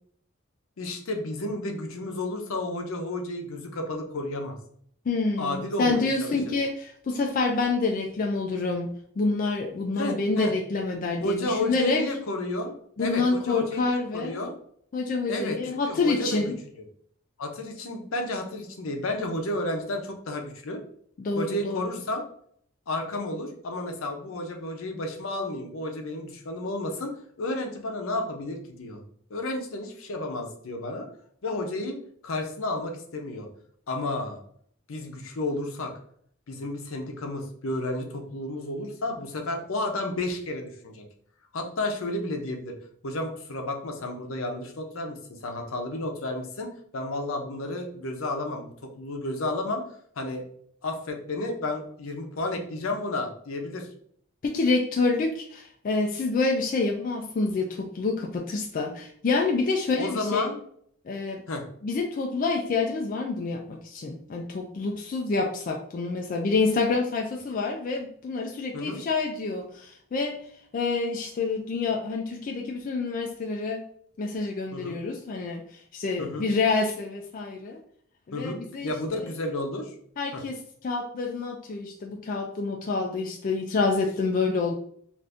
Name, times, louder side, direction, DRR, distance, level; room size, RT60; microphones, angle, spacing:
voice 1, 0.8-4.6 5.4-6.3 9.9-10.5 11.2-14.5 15.3-15.6 15.9-16.4 16.7-16.8 17.4-20.8 21.4-22.2 22.9-27.1 27.4-29.0 29.3-31.1 31.4-32.0 32.2-33.5 33.9-34.4 34.9-35.9 36.5-41.0 41.5-42.7 43.0-49.8 50.2-50.4 50.8-53.9 60.0-60.6 61.5-61.6 68.7-69.0 74.7-75.0 76.2-76.4 78.3-78.6 78.8-79.9 80.3-80.4, left 1 dB, 80° left, 3 dB, 0.6 m, -32 dB
voice 2, 5.1-12.0 13.0-14.5 14.9-16.5 21.2-21.9 54.4-60.5 61.1-61.4 61.8-70.4 70.7-73.8 74.2-75.6 75.9-77.8 78.3-78.9 80.2-80.6 80.8-84.7, left 3 dB, 40° left, 1 dB, 0.3 m, -27 dB
2.6 x 2.5 x 3.4 m, 0.62 s
head